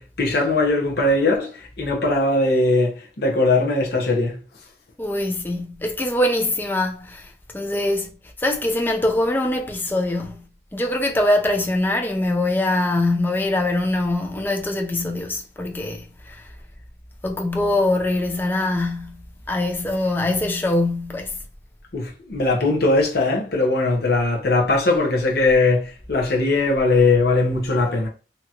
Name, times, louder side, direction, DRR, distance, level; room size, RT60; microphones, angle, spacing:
voice 1, 0.0-4.4 21.9-28.1, left 2 dB, 60° left, 0.8 m, -20 dB
voice 2, 5.0-7.3 7.5-8.1 8.4-10.4 10.7-16.4 17.2-21.3, left 1 dB, 10° left, 0.4 m, -23 dB
2.9 x 2.8 x 2.4 m
head